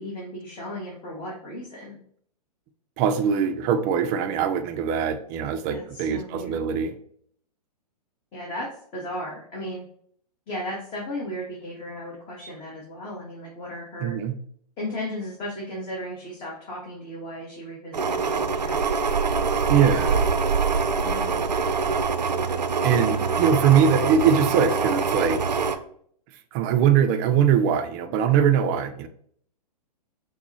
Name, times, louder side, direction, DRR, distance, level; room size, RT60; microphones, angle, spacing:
voice 1, 0.0-2.0 5.7-6.6 8.3-9.8 10.5-14.2 14.8-18.8 21.0-21.4, left 1 dB, 25° left, -4 dB, 1.0 m, -35 dB
voice 2, 3.0-7.0 14.0-14.4 19.7-20.2 22.8-25.6 26.5-29.1, right 8 dB, 25° right, 8 dB, 0.3 m, -22 dB
sound 1, 17.9-25.8, right 5 dB, 90° right, 0.4 m, -24 dB
5.8 x 2.0 x 2.7 m, 0.62 s
figure-of-eight pair, 115°, 21 cm